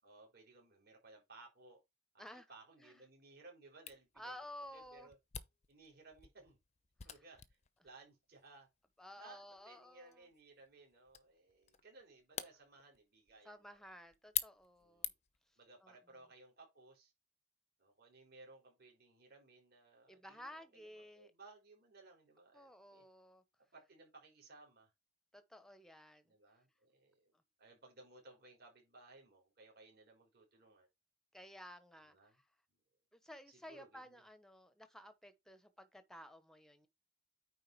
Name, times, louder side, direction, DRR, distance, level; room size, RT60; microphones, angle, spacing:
voice 1, 0.0-1.8 2.5-4.3 4.7-5.2 5.7-6.6 7.0-7.4 7.8-8.7 9.2-13.8 14.8-15.1 15.6-17.1 17.8-23.0 23.6-24.9 26.2-27.3 27.6-30.9 32.1-32.4 33.5-34.2, right 3 dB, 45° right, 4.1 m, -60 dB
Camera, 3.9-15.5, left 11 dB, 30° left, 0.6 m, -48 dB
voice 2, 4.2-5.1 7.0-7.2 9.0-10.3 13.4-15.1 15.5-16.2 20.1-21.3 22.5-23.4 25.3-26.3 31.3-32.5 33.1-36.9, left 1 dB, ahead, 0.8 m, -54 dB
9.2 x 3.9 x 4.6 m
head